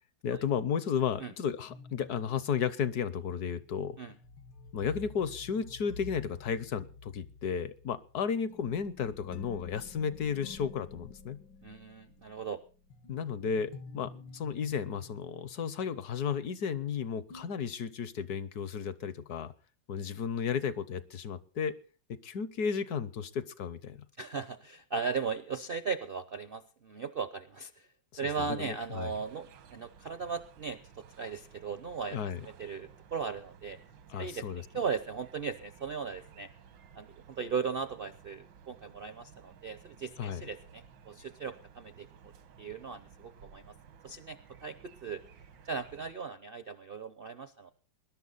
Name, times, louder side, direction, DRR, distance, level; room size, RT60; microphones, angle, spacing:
voice 1, 0.2-4.0 4.7-11.4 13.1-19.5 19.9-21.8 22.1-24.0 28.4-29.1 32.1-32.4 34.1-34.6 40.2-40.4, left 7 dB, 65° left, 15 dB, 1.3 m, -33 dB
sound 1, 1.7-16.9 17.3-17.5, left 4 dB, 80° left, 2.0 m, -50 dB
voice 2, 11.6-12.6 24.2-27.9 28.2-33.8 34.2-34.5 34.7-36.5 36.9-42.1 42.6-43.8 44.0-44.8 45.0-45.2 45.6-47.7, right 5 dB, 50° right, 11 dB, 0.6 m, -37 dB
sound 2, 28.8-46.1, right 7 dB, 80° right, 1.9 m, -56 dB
20.5 x 11.5 x 4.0 m, 0.38 s
omnidirectional pair, 2.0 m